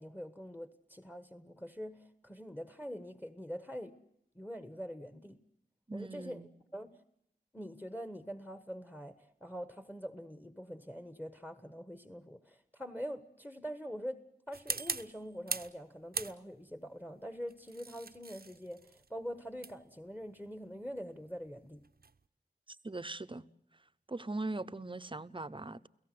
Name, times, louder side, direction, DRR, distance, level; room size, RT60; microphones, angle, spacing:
voice 1, 0.0-4.0 4.3-5.4 5.9-6.4 6.7-7.0 7.5-14.2 14.5-21.8, equal, 10° left, 1.5 m, -44 dB
voice 2, 5.9-6.5 22.8-23.4 24.1-25.9, right 2 dB, 30° right, 0.9 m, -40 dB
sound 1, 14.5-15.8 16.1-16.8 17.5-22.2, right 4 dB, 60° right, 0.9 m, -41 dB
30.0 x 17.0 x 7.8 m
wide cardioid pair, 50°, 18 cm